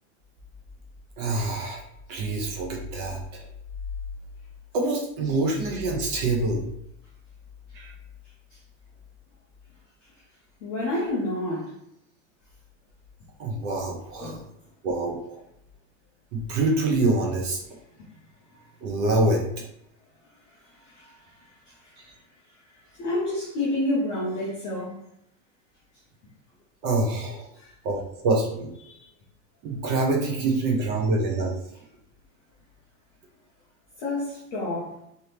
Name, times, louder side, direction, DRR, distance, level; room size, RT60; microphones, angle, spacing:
voice 1, 1.2-1.8 2.1-3.2 4.7-6.6 7.7-7.9 13.4-14.4 14.8-15.4 16.3-17.6 18.8-19.4 26.8-27.4 27.8-28.7 29.6-31.5, right 2 dB, 25° right, -1 dB, 0.7 m, -25 dB
voice 2, 10.6-11.7 14.2-14.5 18.0-18.1 20.6-22.0 23.0-25.0 27.5-27.7 28.8-29.1 34.0-35.0, left 1 dB, 20° left, -8 dB, 0.3 m, -30 dB
3.4 x 2.7 x 2.9 m, 0.75 s
supercardioid pair, 160°, 39 cm